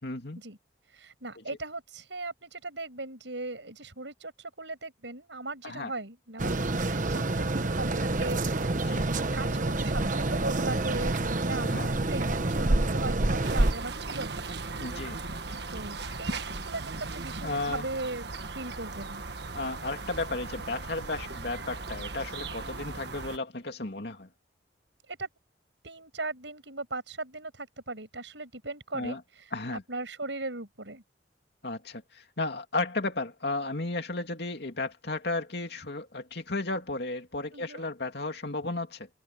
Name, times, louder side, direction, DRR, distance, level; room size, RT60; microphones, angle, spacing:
voice 1, 0.0-0.4 5.6-5.9 8.7-9.0 11.6-11.9 14.8-15.2 17.4-17.9 19.5-24.3 28.9-29.2 29.5-29.8 31.6-39.1, left 2 dB, 65° left, 2.7 m, -34 dB
voice 2, 0.9-14.4 15.7-19.2 25.1-25.3 25.8-29.2 29.9-31.0 37.5-37.9, right 2 dB, 85° right, 6.0 m, -38 dB
sound 1, 6.4-13.7, right 2 dB, 45° right, 1.1 m, -27 dB
sound 2, 13.4-23.4, right 3 dB, 65° right, 1.5 m, -38 dB
head